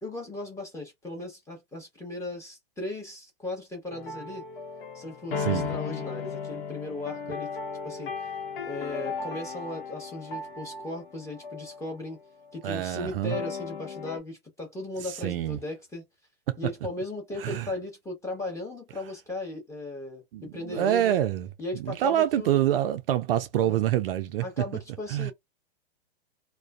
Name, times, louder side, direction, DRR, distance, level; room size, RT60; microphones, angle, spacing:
voice 1, 0.0-4.4 4.9-7.5 7.8-8.3 8.7-12.2 12.5-16.0 16.6-21.1 21.6-22.6 23.5-23.8 24.4-25.3, left 2 dB, 10° left, 1.1 m, -37 dB
sound 1, 3.9-11.9 12.5-12.7 13.3-14.2, left 5 dB, 60° left, 1.0 m, -36 dB
voice 2, 5.4-5.7 12.6-13.4 15.2-15.6 16.5-16.6 17.4-17.7 20.3-24.6 25.1-25.3, right 12 dB, 65° right, 0.4 m, -26 dB
2.4 x 2.2 x 2.3 m
hypercardioid pair, 130°, 31 cm